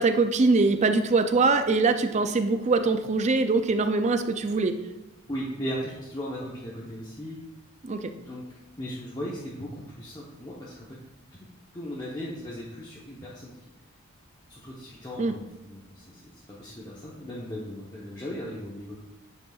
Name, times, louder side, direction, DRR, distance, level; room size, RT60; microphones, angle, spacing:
voice 1, 0.0-4.8 7.8-8.1 15.2-15.4, right 3 dB, 30° right, 8 dB, 0.4 m, -23 dB
voice 2, 5.3-7.4 8.2-8.4 8.8-11.0 11.7-13.5 14.5-19.0, equal, 20° left, -6 dB, 0.9 m, -37 dB
9.2 x 5.4 x 2.4 m, 1.1 s
head